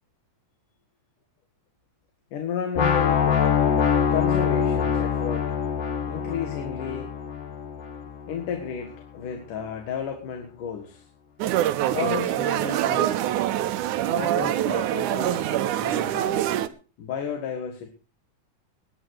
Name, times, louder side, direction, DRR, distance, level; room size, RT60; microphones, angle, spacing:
voice 1, 2.3-3.3 4.1-5.5 6.1-7.1 8.3-11.1 11.9-13.2 14.1-16.5 17.0-17.9, left 7 dB, 85° left, 4 dB, 3.4 m, -33 dB
sound 1, 2.8-8.7, left 7 dB, 55° left, 2.6 m, -24 dB
sound 2, 11.4-16.7, right 12 dB, 80° right, 2.3 m, -25 dB
20.0 x 9.7 x 4.8 m, 0.34 s
omnidirectional pair, 3.6 m